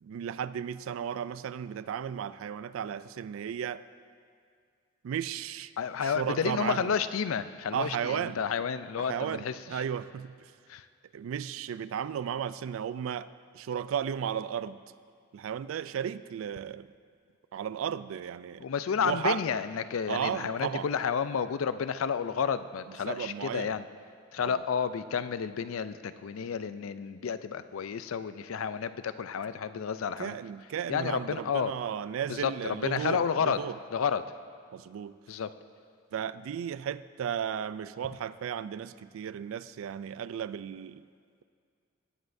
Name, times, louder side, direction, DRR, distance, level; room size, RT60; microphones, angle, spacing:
voice 1, 0.0-3.8 5.0-5.7 6.0-6.9 7.7-8.4 9.0-10.5 11.1-13.3 13.5-14.8 15.3-16.9 17.5-18.6 19.0-19.4 20.1-20.9 23.1-23.8 24.4-24.6 30.2-33.8 34.7-35.2 36.1-41.0, right 8 dB, 75° right, 15 dB, 0.3 m, -34 dB
voice 2, 5.8-9.8 10.7-10.9 18.6-23.8 24.3-30.4 30.9-31.7 32.3-33.6 33.9-34.2 35.3-35.5, left 6 dB, 90° left, 13 dB, 0.4 m, -31 dB
18.0 x 9.7 x 2.6 m, 2.1 s
head